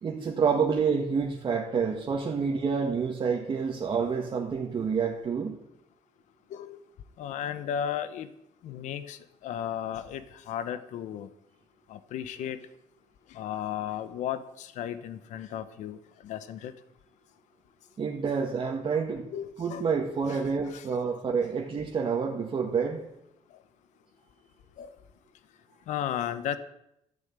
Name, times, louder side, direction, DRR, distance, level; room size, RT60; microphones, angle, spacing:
voice 1, 0.0-5.6 18.0-19.3 19.6-23.0, right 5 dB, 40° right, 1.9 m, -28 dB
voice 2, 7.2-8.3 8.6-11.3 11.9-12.6 13.3-16.0 16.2-16.7 19.3-19.8 20.2-20.4 20.7-20.9 24.8-24.9 25.9-26.6, left 10 dB, 85° left, 1.0 m, -34 dB
13.0 x 7.1 x 9.5 m
cardioid pair, 125°, 12 cm